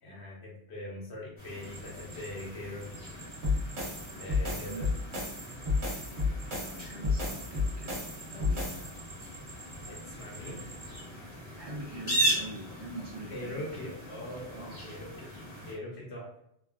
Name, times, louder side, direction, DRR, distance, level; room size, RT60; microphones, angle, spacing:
voice 1, 0.0-3.1 4.2-4.9 9.8-10.6 13.3-15.3 15.6-16.4, left 1 dB, 75° left, -3 dB, 1.0 m, -42 dB
sound 1, 1.4-15.7, right 1 dB, 30° left, 0.8 m, -38 dB
sound 2, 1.6-11.0, right 3 dB, 5° right, 0.6 m, -50 dB
sound 3, 3.4-8.9, left 3 dB, 75° right, 1.1 m, -31 dB
voice 2, 4.5-4.9 6.6-8.0 8.3-8.7 11.6-13.6 14.5-14.8, right 1 dB, 45° right, -3 dB, 0.3 m, -43 dB
3.2 x 2.3 x 2.3 m, 0.75 s
omnidirectional pair, 1.1 m